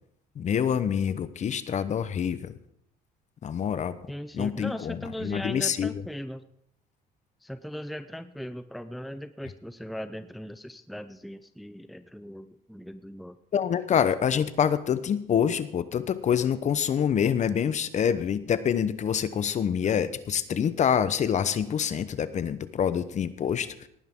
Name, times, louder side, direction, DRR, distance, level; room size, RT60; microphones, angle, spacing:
voice 1, 0.4-2.5 3.4-4.0 4.3-5.9 13.5-23.7, left 8 dB, 45° left, 14 dB, 0.9 m, -26 dB
voice 2, 4.1-6.5 7.4-13.4, equal, ahead, 12 dB, 0.5 m, -38 dB
18.5 x 10.0 x 3.7 m, 0.73 s
cardioid pair, 110°, 17 cm